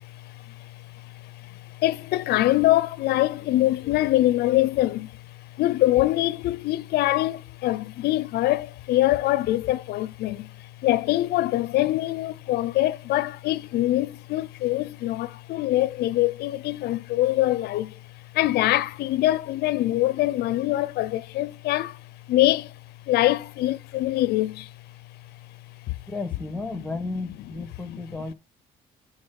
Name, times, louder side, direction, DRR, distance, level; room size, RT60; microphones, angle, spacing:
voice 1, 1.8-5.1 5.6-10.5 10.8-17.9 18.3-22.0 22.3-22.7 23.1-24.7 25.9-26.0 27.9-28.0, left 16 dB, 70° left, 0.5 m, -23 dB
voice 2, 26.1-28.3, left 3 dB, 5° left, 1.1 m, -33 dB
7.0 x 3.9 x 5.2 m
cardioid pair, 110°, 17 cm